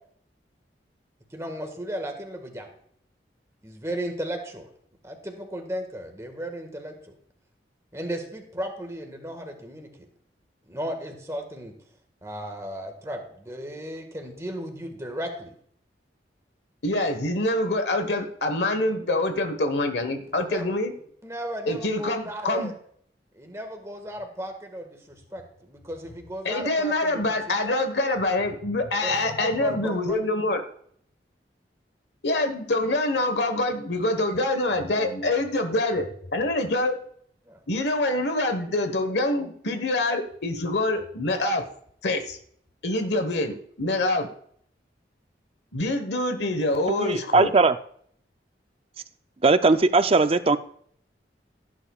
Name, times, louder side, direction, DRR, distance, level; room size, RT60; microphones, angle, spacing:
voice 1, 1.3-2.7 3.6-4.7 5.0-7.2 7.9-10.1 10.6-11.7 12.2-15.5 20.3-20.6 21.2-22.7 23.3-27.3 27.6-27.8 29.0-30.2 37.4-37.6, equal, 15° right, 4 dB, 1.7 m, -35 dB
voice 2, 16.8-20.9 21.7-22.7 26.4-30.6 32.2-37.0 37.7-41.6 42.0-42.4 42.8-44.3 45.7-47.5, left 2 dB, 75° left, 7 dB, 1.3 m, -25 dB
voice 3, 46.9-47.8 49.4-50.6, right 3 dB, 30° right, 11 dB, 0.5 m, -19 dB
16.0 x 10.0 x 2.4 m, 0.63 s
head